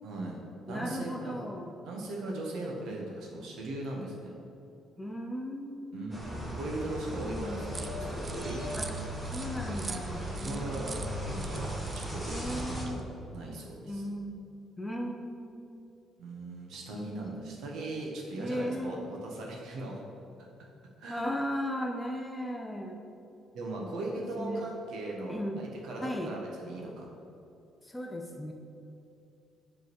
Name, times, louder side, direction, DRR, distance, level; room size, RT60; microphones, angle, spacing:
voice 1, 0.0-0.4 0.7-1.4 1.9-4.3 5.9-8.6 10.4-11.7 11.9-13.0 13.3-14.0 16.2-20.0 20.4-20.5 21.0-21.3 23.5-27.1, right 2 dB, 80° right, -1 dB, 1.3 m, -39 dB
voice 2, 0.7-1.7 5.0-6.1 7.1-7.7 8.7-8.9 9.3-11.2 12.3-13.0 13.9-15.9 16.9-17.6 18.4-19.1 21.1-23.0 23.8-24.6 25.3-25.6 26.0-26.3 27.8-28.5, equal, 10° left, 1 dB, 0.6 m, -37 dB
sound 1, 6.1-12.8, equal, 10° right, 1.3 m, -37 dB
sound 2, 7.7-13.0, right 4 dB, 30° right, 0.4 m, -45 dB
8.0 x 3.8 x 4.7 m, 2.7 s
cardioid pair, 115°, 0 cm